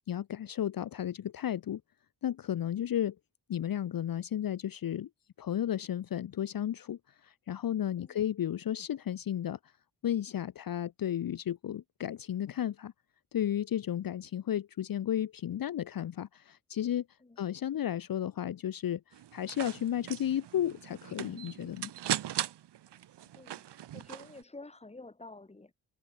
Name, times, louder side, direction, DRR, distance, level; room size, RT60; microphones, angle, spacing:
voice 1, 0.1-1.8 2.2-3.2 3.5-5.1 5.4-9.6 10.0-12.9 13.3-17.1 17.4-21.9, left 10 dB, 55° left, 0.8 m, -33 dB
sound 1, 19.1-24.4, right 12 dB, 85° right, 1.0 m, -39 dB
voice 2, 23.9-25.7, left 2 dB, 15° left, 2.0 m, -49 dB
wide cardioid pair, 110°, 41 cm